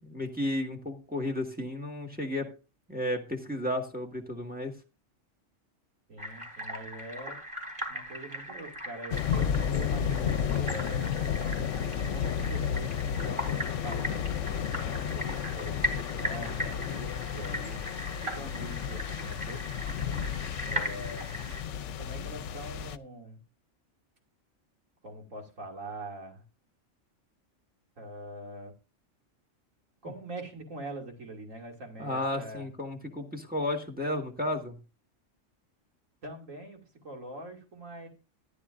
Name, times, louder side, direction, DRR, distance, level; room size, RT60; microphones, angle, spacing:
voice 1, 0.0-2.5 2.9-4.8 32.0-34.7, left 1 dB, 5° right, 3 dB, 1.7 m, -33 dB
voice 2, 6.1-7.4 7.9-11.1 12.1-14.3 14.8-17.9 18.2-19.6 20.6-21.3 22.0-23.4 25.0-26.4 28.0-28.7 30.0-32.7 36.2-38.1, right 1 dB, 85° right, 1 dB, 2.9 m, -43 dB
sound 1, 6.2-21.6, equal, 25° right, 3.9 m, -39 dB
sound 2, 9.1-23.0, left 8 dB, 70° left, 1.0 m, -32 dB
14.5 x 11.0 x 2.5 m, 0.32 s
omnidirectional pair, 1.3 m